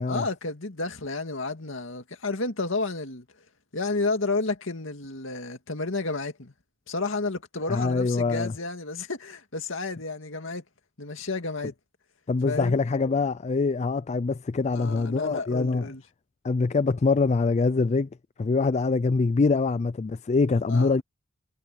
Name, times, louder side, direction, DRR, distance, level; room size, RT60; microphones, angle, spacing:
voice 1, 0.1-3.3 3.7-6.5 6.9-10.6 11.0-11.7 12.4-12.8 14.7-16.0 20.7-21.0, left 3 dB, 70° left, 2.3 m, -31 dB
voice 2, 7.7-8.5 12.3-15.9 16.4-18.1 18.4-21.0, left 4 dB, 35° left, 0.4 m, -24 dB
head